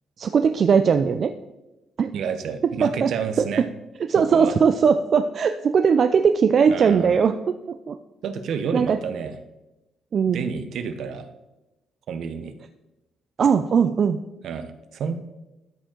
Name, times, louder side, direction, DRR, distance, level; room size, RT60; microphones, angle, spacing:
voice 1, 0.2-1.3 2.0-2.1 2.8-3.1 3.4-3.7 4.1-7.6 7.9-8.0 8.7-9.0 10.1-10.5 13.4-14.2, right 6 dB, 55° right, 8 dB, 0.4 m, -19 dB
voice 2, 2.1-3.7 4.2-4.5 6.7-7.2 8.2-9.4 10.3-11.3 12.1-12.5 14.4-15.2, right 6 dB, 70° right, 9 dB, 0.8 m, -30 dB
13.0 x 5.1 x 3.8 m, 1.0 s
cardioid pair, 90°, 0 cm